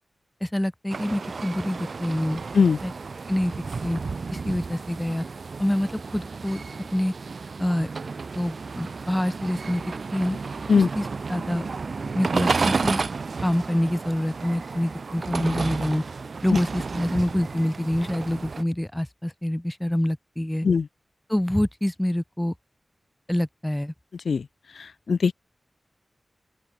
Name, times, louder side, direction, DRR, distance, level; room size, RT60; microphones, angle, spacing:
voice 1, 0.4-2.4 2.8-2.9 3.3-3.5 3.8-4.0 4.3-5.2 5.6-6.6 6.9-7.1 7.6-7.9 8.4-9.8 10.1-10.4 10.7-11.6 12.1-13.0 13.4-16.0 16.4-20.7 21.3-22.5 23.3-23.9, left 1 dB, 10° left, 4.6 m, -26 dB
sound 1, 0.9-18.6, right 4 dB, 70° right, 5.1 m, -32 dB
voice 2, 24.7-25.3, left 5 dB, 90° left, 5.2 m, -20 dB
open air
wide cardioid pair, 70°, 0 cm